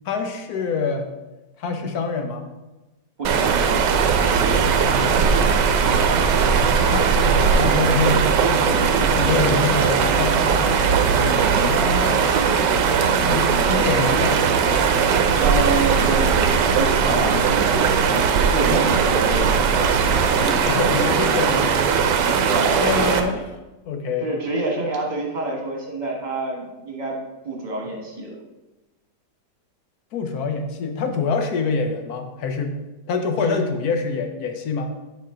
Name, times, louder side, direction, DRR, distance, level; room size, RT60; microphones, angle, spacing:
voice 1, 0.0-1.1 1.6-2.5 4.6-5.2 5.9-6.3 6.8-10.7 11.2-12.3 13.2-14.4 18.7-18.8 20.3-22.5 22.8-23.6 23.9-24.3 30.1-32.8 33.1-34.9, left 4 dB, 65° left, 5 dB, 1.1 m, -26 dB
voice 2, 3.2-3.7 9.2-9.4 15.4-16.3 16.8-19.7 22.4-22.8 24.2-27.2 27.4-28.3 33.4-33.6, right 2 dB, 25° right, -1 dB, 1.5 m, -27 dB
sound 1, 3.2-23.2, right 6 dB, 80° right, 1.3 m, -19 dB
6.9 x 5.6 x 3.8 m, 1.1 s
omnidirectional pair, 1.9 m